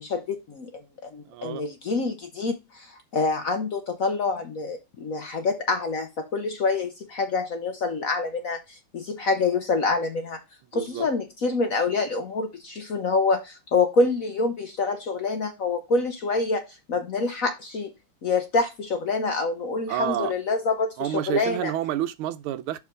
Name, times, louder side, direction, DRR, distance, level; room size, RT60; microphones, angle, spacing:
voice 1, 0.0-10.4 10.7-16.6 16.9-17.9 18.2-21.7, left 3 dB, 60° left, 0.9 m, -26 dB
voice 2, 1.3-1.7 10.7-11.1 19.9-20.3 21.0-22.8, right 12 dB, 85° right, 1.5 m, -29 dB
5.5 x 4.8 x 5.1 m
omnidirectional pair, 2.3 m